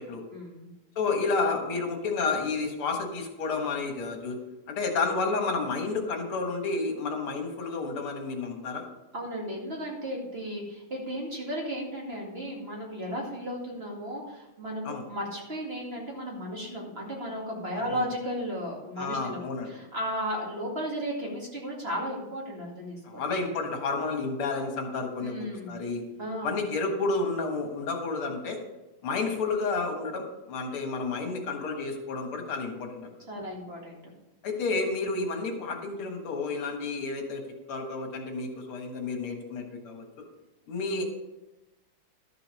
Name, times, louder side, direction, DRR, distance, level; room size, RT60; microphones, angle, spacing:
voice 1, 0.3-0.7 9.1-23.3 25.2-25.8 26.2-26.6 33.3-34.0, equal, 30° right, -2 dB, 2.2 m, -35 dB
voice 2, 1.0-4.4 4.7-8.9 14.8-15.0 17.9-18.1 19.0-19.7 23.0-26.0 26.4-28.6 29.0-33.1 34.4-37.4 37.7-40.0 40.7-41.0, left 3 dB, 85° left, 4 dB, 2.4 m, -30 dB
12.5 x 6.9 x 5.3 m, 1.0 s
omnidirectional pair, 2.3 m